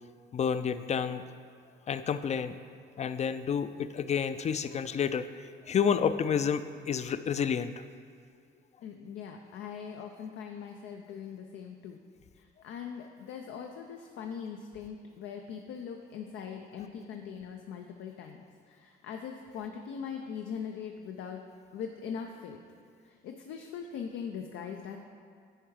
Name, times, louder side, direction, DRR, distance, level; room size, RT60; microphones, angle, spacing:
voice 1, 0.3-1.2 1.9-2.6 3.0-7.8, left 7 dB, 35° left, 12 dB, 0.4 m, -30 dB
voice 2, 8.8-12.0 12.3-21.4 21.7-22.6 23.0-25.0, left 7 dB, 85° left, 3 dB, 0.5 m, -41 dB
9.9 x 4.6 x 4.7 m, 2.1 s
cardioid pair, 90°, 20 cm